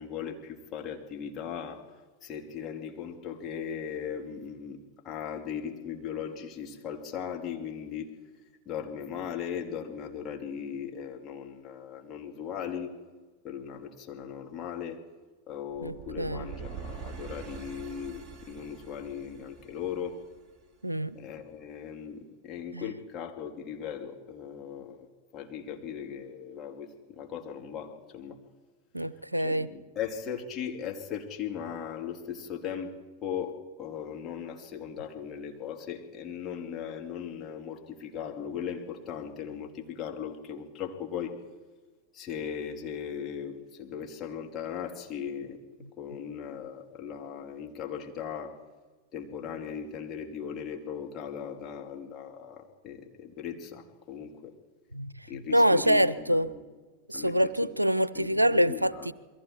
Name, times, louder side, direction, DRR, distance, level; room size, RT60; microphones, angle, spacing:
voice 1, 0.0-1.8 2.2-4.8 5.0-8.1 8.6-12.9 13.4-15.0 15.5-20.2 21.1-25.1 25.3-28.4 29.4-32.9 33.2-33.5 33.8-41.4 42.1-45.6 46.0-48.6 49.1-54.5 55.3-56.6 57.1-57.7 58.1-59.1, left 8 dB, 30° left, 2 dB, 3.1 m, -38 dB
sound 1, 15.7-20.7, right 7 dB, 15° right, 3.2 m, -44 dB
voice 2, 15.8-16.5 20.8-21.2 22.7-22.9 28.9-29.7 54.9-55.1 55.5-56.5 57.1-59.1, equal, 85° right, 18 dB, 0.7 m, -25 dB
28.5 x 22.5 x 4.6 m, 1.3 s
figure-of-eight pair, 90°, 0 cm